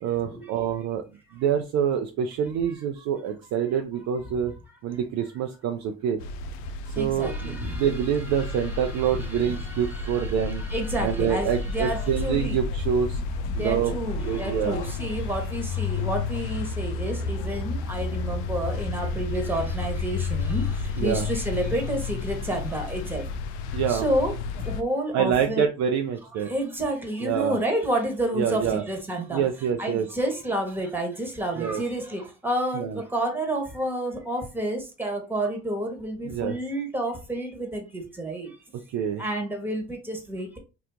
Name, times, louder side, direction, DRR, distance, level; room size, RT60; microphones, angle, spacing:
voice 1, 0.0-1.0 1.3-4.5 4.8-6.2 7.0-10.6 11.0-13.2 13.6-13.9 14.3-14.8 21.0-21.3 23.7-24.1 25.1-26.5 27.2-27.6 28.3-28.8 29.3-30.1 31.6-31.8 32.7-33.0 36.2-36.6 38.9-39.2, right 8 dB, 55° right, 4 dB, 0.6 m, -26 dB
sound 1, 6.2-24.8, left 4 dB, 85° left, 0.5 m, -31 dB
voice 2, 7.0-8.0 8.3-12.6 13.6-20.6 21.0-23.2 23.9-24.3 24.6-25.6 26.5-29.4 29.8-38.5 39.2-40.6, right 1 dB, 5° right, 4 dB, 1.4 m, -30 dB
2.9 x 2.4 x 3.6 m, 0.31 s
hypercardioid pair, 65°, 33 cm